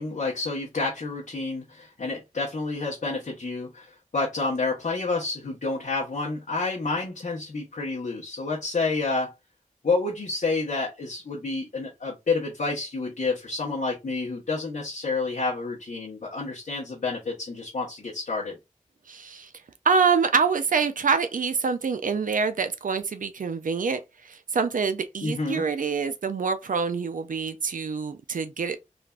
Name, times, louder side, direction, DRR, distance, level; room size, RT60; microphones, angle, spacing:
voice 1, 0.0-9.3 9.8-18.6 25.2-25.6, left 3 dB, 70° left, 0.8 m, -29 dB
voice 2, 19.1-19.5 19.8-28.8, right 5 dB, 80° right, 0.4 m, -26 dB
3.2 x 2.4 x 2.2 m
wide cardioid pair, 60°, 14 cm